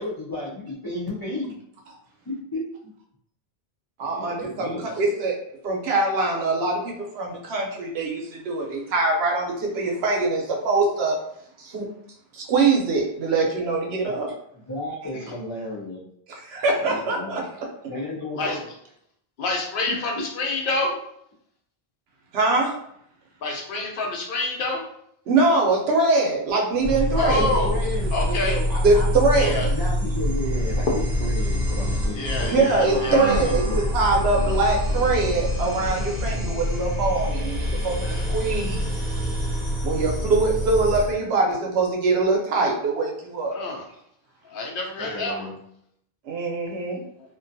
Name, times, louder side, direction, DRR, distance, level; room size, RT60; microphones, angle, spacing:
voice 1, 0.0-1.6 2.3-2.6 4.0-5.0 14.7-16.0 16.9-17.5 17.9-18.8 19.9-20.3 27.1-29.1 29.5-30.9 31.2-33.8 45.0-45.6, left 1 dB, 35° left, -6 dB, 0.4 m, -33 dB
voice 2, 4.0-5.4 5.6-11.2 11.6-11.8 12.3-14.3 16.5-17.4 22.3-22.7 25.3-27.6 28.8-29.7 32.5-38.9 39.8-43.5 46.3-47.0, right 3 dB, 80° right, 0 dB, 0.9 m, -23 dB
voice 3, 19.4-20.9 23.4-24.8 27.2-27.8 28.1-28.6 29.4-29.6 32.1-33.2 38.0-38.2 43.5-43.8 44.5-45.5, left 2 dB, 65° left, 0 dB, 0.7 m, -27 dB
sound 1, 26.8-41.1, equal, 45° right, 0.8 m, -26 dB
2.4 x 2.2 x 2.6 m, 0.72 s
omnidirectional pair, 1.0 m